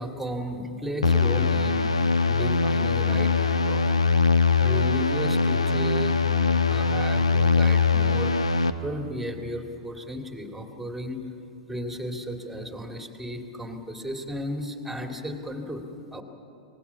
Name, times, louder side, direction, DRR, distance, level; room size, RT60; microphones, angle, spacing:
voice 1, 0.0-3.9 4.6-6.2 6.6-8.3 8.8-11.2 11.7-16.2, equal, 5° right, 4 dB, 2.4 m, -34 dB
sound 1, 1.0-8.7, left 4 dB, 80° left, 1.1 m, -22 dB
25.0 x 20.0 x 7.1 m, 2.7 s
figure-of-eight pair, 100°, 3 cm